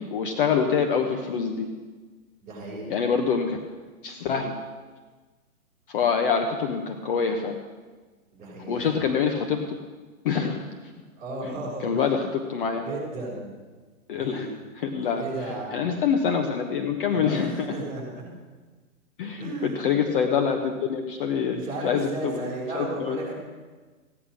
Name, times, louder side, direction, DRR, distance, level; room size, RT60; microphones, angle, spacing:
voice 1, 0.0-1.7 2.9-3.6 4.0-4.5 5.9-7.5 8.7-9.8 10.2-10.6 11.8-12.9 14.1-14.5 14.8-15.2 15.7-17.7 19.2-22.5 22.7-23.2, left 6 dB, 35° left, 4 dB, 1.1 m, -25 dB
voice 2, 2.4-2.9 8.3-9.1 11.2-12.2 12.8-13.5 14.1-14.6 15.0-15.9 17.1-18.3 19.4-20.0 21.5-23.3, right 2 dB, 20° right, -6 dB, 5.9 m, -34 dB
16.0 x 10.0 x 6.4 m, 1.4 s
hypercardioid pair, 155°, 45 cm